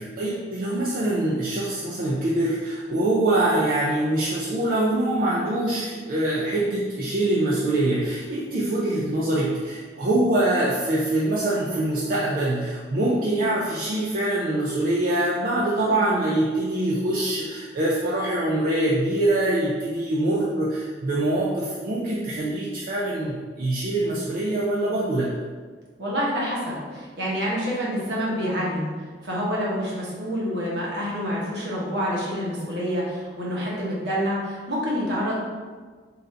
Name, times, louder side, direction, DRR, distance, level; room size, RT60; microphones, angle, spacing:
voice 1, 0.0-25.3, right 1 dB, 55° right, -6 dB, 0.5 m, -24 dB
voice 2, 26.0-28.9 29.2-35.3, equal, 70° right, -5 dB, 1.1 m, -27 dB
3.9 x 2.6 x 3.3 m, 1.5 s
head